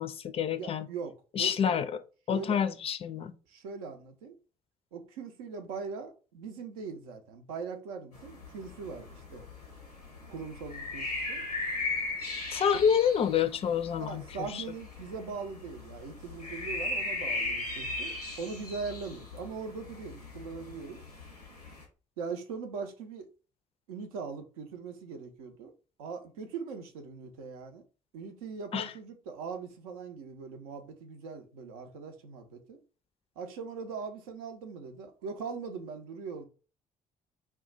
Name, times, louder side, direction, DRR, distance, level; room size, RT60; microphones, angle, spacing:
voice 1, 0.0-0.9 1.4-1.9 2.3-3.3 12.5-14.2 14.5-14.6 28.7-28.9, left 8 dB, 30° left, 0.4 m, -27 dB
voice 2, 0.6-1.8 2.3-2.6 3.5-4.4 4.9-9.4 10.3-11.4 14.0-21.0 22.2-23.3 23.9-25.7 26.0-27.8 28.1-32.8 33.4-36.4, right 5 dB, 70° right, 0.5 m, -40 dB
sound 1, 8.1-21.8, left 2 dB, 90° left, 0.6 m, -38 dB
2.2 x 2.2 x 3.8 m
figure-of-eight pair, 45°, 19 cm